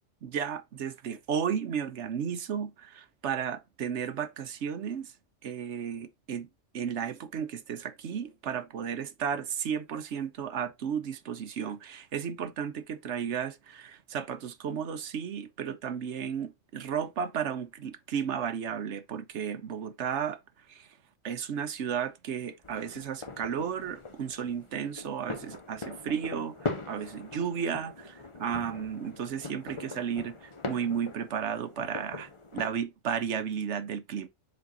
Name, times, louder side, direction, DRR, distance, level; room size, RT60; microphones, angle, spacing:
voice 1, 0.2-5.1 5.4-6.5 6.7-20.4 20.7-20.9 21.2-34.3, right 7 dB, 70° right, 1.1 m, -33 dB
sound 1, 22.6-32.8, left 3 dB, 30° left, 0.8 m, -41 dB
7.4 x 4.5 x 3.8 m
omnidirectional pair, 1.3 m